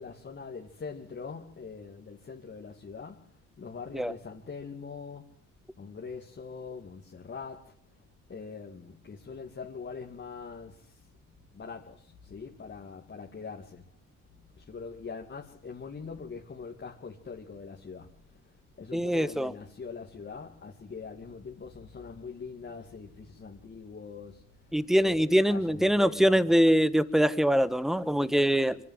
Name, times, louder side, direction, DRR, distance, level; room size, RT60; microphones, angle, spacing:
voice 1, 0.0-3.3 3.6-5.3 5.8-7.7 8.3-11.1 11.5-13.8 14.4-26.4, left 5 dB, 40° left, 2.7 m, -43 dB
voice 2, 18.9-19.5 24.7-28.8, equal, ahead, 1.4 m, -23 dB
24.5 x 16.0 x 7.9 m
cardioid pair, 90°, 30 cm